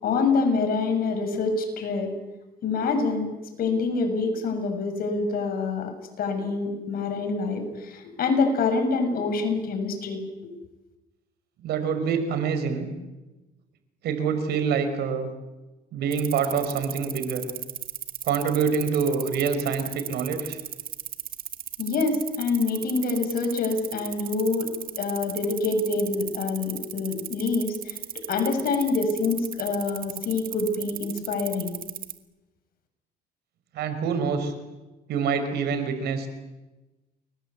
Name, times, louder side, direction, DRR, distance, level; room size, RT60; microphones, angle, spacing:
voice 1, 0.0-2.1 2.6-3.3 3.6-5.9 6.2-10.2 21.8-24.7 25.0-31.8, left 4 dB, 60° left, 6 dB, 7.1 m, -26 dB
voice 2, 11.6-12.9 14.0-15.3 15.9-17.4 18.2-20.6 33.7-34.5 35.1-36.3, right 6 dB, 75° right, 9 dB, 5.5 m, -26 dB
sound 1, 16.1-32.2, right 10 dB, 55° right, 2.1 m, -35 dB
29.5 x 22.5 x 8.5 m, 1.1 s
cardioid pair, 110°, 17 cm